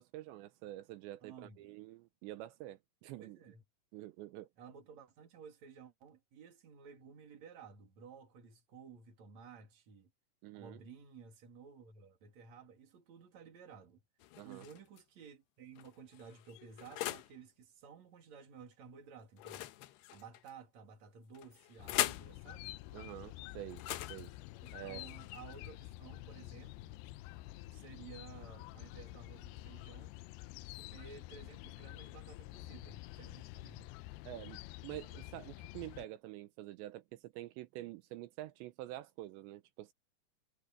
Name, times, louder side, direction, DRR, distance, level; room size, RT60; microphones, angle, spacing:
voice 1, 0.0-3.4 3.9-4.5 10.4-10.8 14.4-14.7 22.9-23.8 24.1-24.3 24.7-25.1 34.3-39.9, right 15 dB, 85° right, 3.1 m, -47 dB
voice 2, 1.2-1.6 3.2-3.6 4.6-10.1 10.5-14.0 14.4-19.7 20.1-22.8 24.6-27.0 27.7-30.1 30.7-33.9, right 6 dB, 45° right, 3.5 m, -55 dB
sound 1, 14.2-15.0 15.7-17.4 19.4-20.5 21.3-22.3 23.7-25.7, left 15 dB, 75° left, 2.9 m, -41 dB
sound 2, 21.8-36.1, left 19 dB, 90° left, 2.3 m, -49 dB
sound 3, 22.6-29.9, left 4 dB, 45° left, 4.1 m, -65 dB
omnidirectional pair, 5.1 m